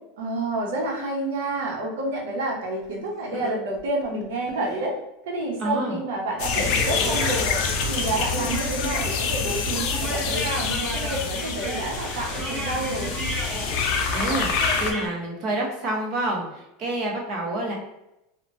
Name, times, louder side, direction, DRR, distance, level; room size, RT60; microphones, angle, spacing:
voice 1, 0.2-4.9 5.2-7.6 7.9-13.1, right 2 dB, 85° right, -1 dB, 0.8 m, -29 dB
Laughter, 2.8-2.9 3.3-4.8 6.6-7.8, left 2 dB, 10° left, 0.6 m, -35 dB
voice 2, 5.6-6.0 14.1-14.5 14.8-17.8, right 1 dB, 40° right, -1 dB, 0.8 m, -28 dB
sound 1, 6.4-14.9, left 5 dB, 55° left, 0.4 m, -26 dB
sound 2, 6.8-15.1, right 1 dB, 20° right, 1.1 m, -34 dB
2.8 x 2.2 x 2.6 m, 0.87 s
supercardioid pair, 140°, 0 cm